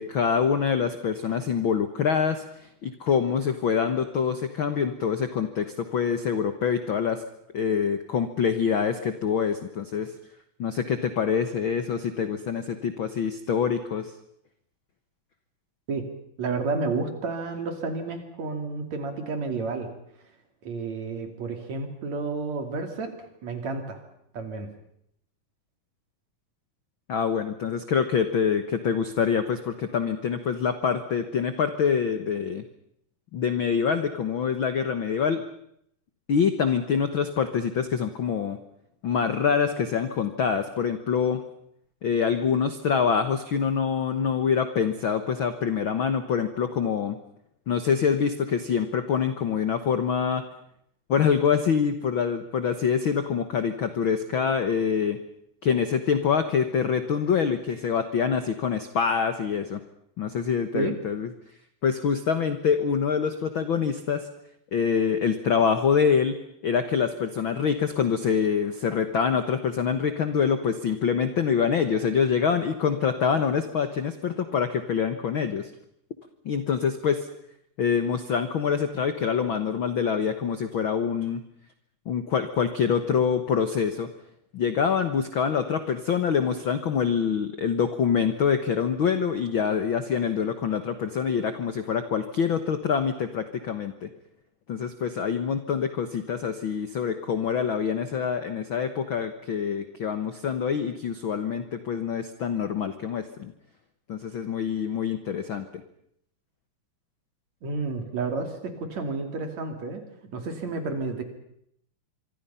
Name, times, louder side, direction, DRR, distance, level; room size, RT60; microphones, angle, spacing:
voice 1, 0.0-7.2 7.5-10.1 10.6-14.1 27.1-32.6 33.3-35.4 36.3-38.6 39.0-41.4 42.0-47.2 47.7-50.4 51.1-55.2 55.6-59.8 60.2-61.3 61.8-64.3 64.7-66.4 66.6-75.7 76.4-77.3 77.8-81.4 82.1-84.1 84.5-94.1 94.7-103.5 104.1-105.8, left 7 dB, 80° left, 9 dB, 1.1 m, -25 dB
voice 2, 16.4-19.9 20.6-24.0 24.3-24.7 60.7-61.0 107.6-110.0 110.3-111.2, right 4 dB, 50° right, 6 dB, 3.7 m, -31 dB
25.5 x 25.0 x 5.7 m, 0.70 s
omnidirectional pair, 4.2 m